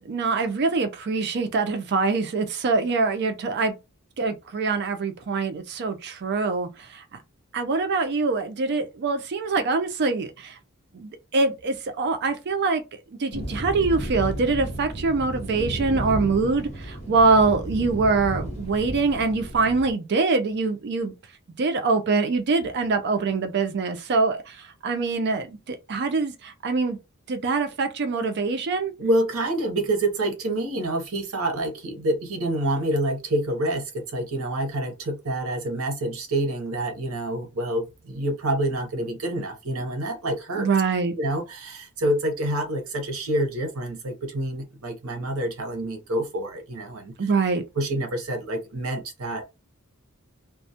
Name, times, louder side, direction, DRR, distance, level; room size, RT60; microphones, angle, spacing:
voice 1, 0.0-3.8 4.2-7.2 7.5-10.6 10.9-21.1 21.6-27.0 27.3-28.9 40.6-41.1 47.2-47.6, right 4 dB, 50° right, 0.4 m, -24 dB
sound 1, 13.3-19.9, right 1 dB, 30° left, 0.8 m, -33 dB
voice 2, 29.0-40.7 41.2-47.1 47.8-49.4, right 1 dB, 70° right, 0.8 m, -27 dB
2.2 x 2.1 x 2.7 m
head